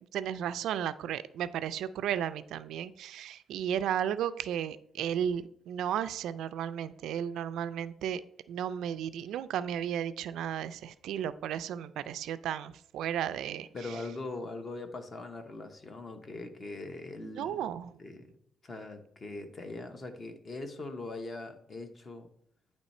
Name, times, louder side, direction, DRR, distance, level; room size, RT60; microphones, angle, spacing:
voice 1, 0.1-8.2 8.5-13.7 17.2-18.0, right 9 dB, 85° right, 14 dB, 0.3 m, -34 dB
voice 2, 13.7-17.7 18.0-18.3 18.6-22.3, left 2 dB, 30° left, 7 dB, 0.8 m, -41 dB
9.2 x 3.1 x 4.2 m, 0.68 s
cardioid pair, 140°, 0 cm